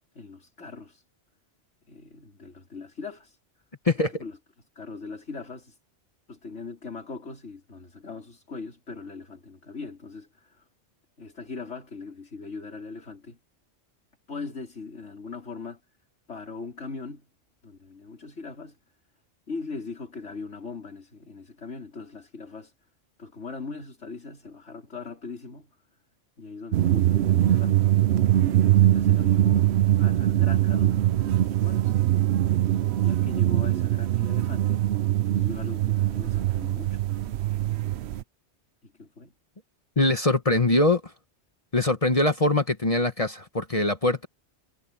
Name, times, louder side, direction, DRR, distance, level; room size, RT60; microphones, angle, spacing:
voice 1, 0.1-1.0 1.9-3.3 4.0-4.4 4.8-5.7 6.3-10.6 11.2-13.4 14.3-15.8 16.3-17.3 17.6-18.8 19.5-22.7 23.2-25.8 26.4-27.9 28.4-31.9 32.9-34.9 35.3-37.0 38.8-39.3, left 4 dB, 85° left, 4.5 m, -40 dB
sound 1, 26.7-38.2, right 13 dB, 70° right, 0.9 m, -22 dB
voice 2, 40.0-41.1 41.7-44.3, left 2 dB, 30° left, 1.2 m, -22 dB
omnidirectional pair, 1.2 m